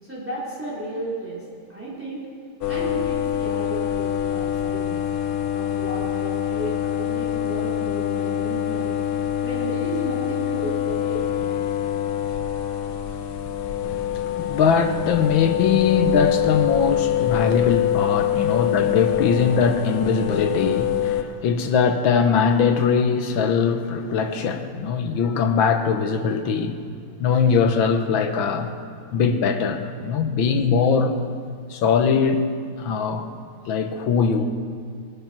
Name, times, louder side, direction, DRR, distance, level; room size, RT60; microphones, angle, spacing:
voice 1, 0.0-1.4 1.7-2.2 2.7-5.0 5.5-8.9 9.4-11.6, right 1 dB, 5° right, 4.3 m, -33 dB
sound 1, 2.6-21.2, left 10 dB, 90° left, 1.7 m, -25 dB
voice 2, 13.8-26.8 27.2-28.7 29.1-31.1 31.7-32.5 32.8-33.3 33.7-34.4, left 6 dB, 75° left, 1.7 m, -21 dB
20.0 x 9.0 x 6.0 m
omnidirectional pair, 2.2 m